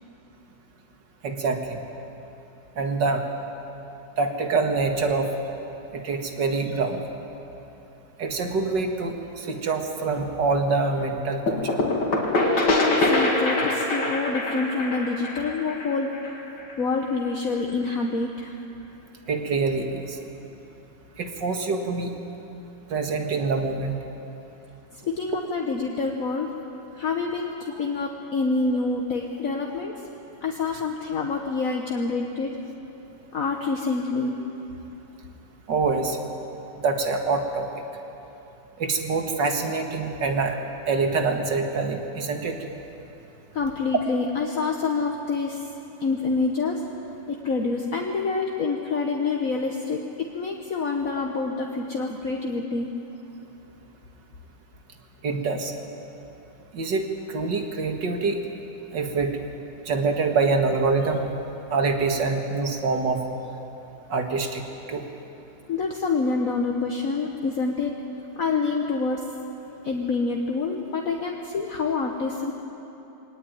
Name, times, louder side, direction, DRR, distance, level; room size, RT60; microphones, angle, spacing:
voice 1, 1.2-1.8 2.8-3.2 4.2-5.3 5.9-7.1 8.2-11.8 19.3-20.2 21.2-22.1 22.9-24.0 35.7-36.2 36.8-37.7 38.8-40.6 40.9-42.6 55.2-55.7 56.7-58.4 58.9-59.3 59.9-61.3 61.7-63.2 64.1-64.6 64.9-65.1, right 4 dB, 70° right, 4 dB, 2.5 m, -25 dB
sound 1, 11.5-17.0, left 2 dB, 75° left, 3.0 m, -24 dB
voice 2, 12.6-16.4 16.8-18.6 24.9-26.5 26.9-30.0 30.4-32.6 33.3-34.4 43.5-45.7 46.0-46.8 47.3-52.9 65.7-67.9 68.4-69.2 69.8-72.5, left 4 dB, 50° left, 1 dB, 1.6 m, -27 dB
22.5 x 18.5 x 9.3 m, 3.0 s
omnidirectional pair, 2.0 m